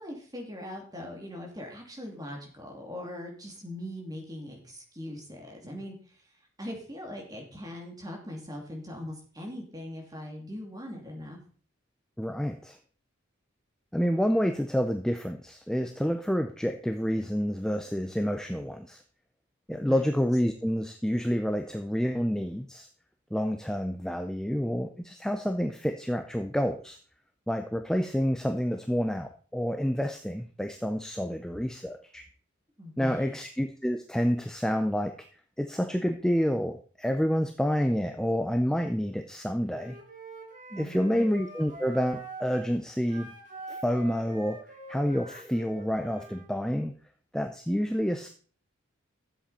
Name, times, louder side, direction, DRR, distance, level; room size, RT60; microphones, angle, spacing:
voice 1, 0.0-5.9 6.6-11.4 19.7-20.1 32.8-33.3 40.7-41.3, left 1 dB, 20° right, 0 dB, 2.8 m, -40 dB
voice 2, 12.2-12.8 13.9-19.0 19.7-22.9 23.3-27.0 27.5-32.2 33.0-35.1 35.6-40.0 40.8-43.3 43.7-44.6 44.9-46.9 47.3-48.3, equal, 5° left, 5 dB, 0.5 m, -28 dB
Wind instrument woodwind instrument, 39.7-42.7 43.1-46.5, right 2 dB, 40° right, 2.3 m, -45 dB
13.0 x 7.8 x 4.3 m, 0.43 s
head